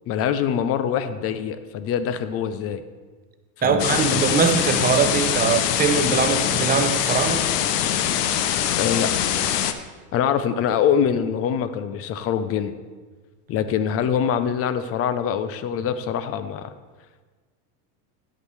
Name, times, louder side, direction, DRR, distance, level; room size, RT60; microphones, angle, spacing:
voice 1, 0.1-2.8 3.6-4.2 8.8-9.1 10.1-12.8 13.5-16.7, left 8 dB, 30° left, 0.4 m, -24 dB
voice 2, 3.6-7.5, right 6 dB, 20° right, 0.5 m, -22 dB
sound 1, 3.8-9.7, left 10 dB, 80° left, 0.8 m, -23 dB
10.0 x 8.3 x 3.2 m
supercardioid pair, 120°, 48 cm